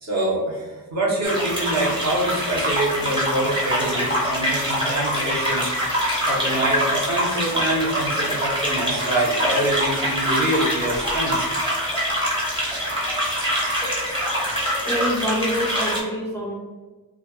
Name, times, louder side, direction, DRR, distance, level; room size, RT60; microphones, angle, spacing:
voice 1, 0.0-6.0 6.3-11.5, right 1 dB, 50° right, -5 dB, 1.0 m, -25 dB
sound 1, 1.2-16.0, equal, 15° right, 0.9 m, -24 dB
voice 2, 14.4-16.5, equal, 10° left, -4 dB, 0.5 m, -27 dB
3.3 x 2.3 x 2.3 m, 1.3 s
wide cardioid pair, 115°, 36 cm